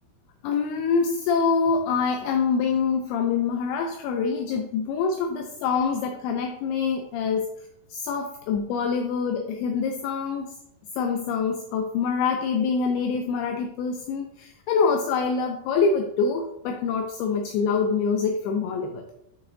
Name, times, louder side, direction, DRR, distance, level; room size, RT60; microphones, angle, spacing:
voice 1, 0.4-7.5 7.9-10.5 10.9-19.0, left 5 dB, 80° left, 3 dB, 2.4 m, -25 dB
8.7 x 4.9 x 2.7 m, 0.80 s
omnidirectional pair, 4.7 m